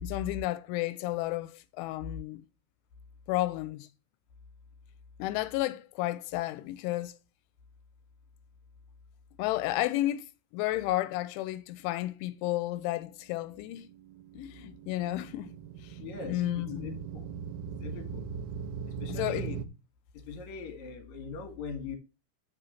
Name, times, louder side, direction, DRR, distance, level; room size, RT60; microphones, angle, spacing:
voice 1, 0.0-2.4 3.3-3.9 5.2-7.2 9.4-13.9 14.3-15.5 15.8-16.0 16.2-17.0 19.1-19.5, left 16 dB, 90° left, 3.0 m, -32 dB
sound 1, 13.7-19.7, right 7 dB, 90° right, 3.1 m, -40 dB
voice 2, 16.0-17.3 17.8-18.3 19.0-19.6 20.1-22.0, left 5 dB, 55° left, 2.4 m, -41 dB
6.9 x 6.0 x 5.6 m
omnidirectional pair, 5.4 m